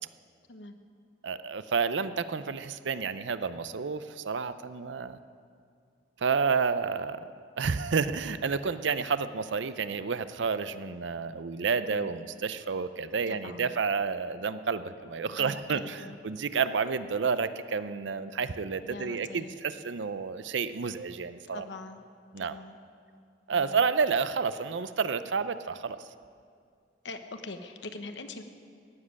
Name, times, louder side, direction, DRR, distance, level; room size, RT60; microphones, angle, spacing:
voice 1, 1.2-5.2 6.2-7.3 7.6-21.6 22.3-22.5 23.5-26.1, right 5 dB, 85° right, 13 dB, 0.6 m, -30 dB
voice 2, 13.3-13.7 15.3-16.2 18.8-19.5 21.5-22.0 22.4-22.8 23.5-23.8 27.0-28.4, left 3 dB, 80° left, 7 dB, 1.0 m, -43 dB
15.5 x 7.5 x 10.0 m, 2.3 s
head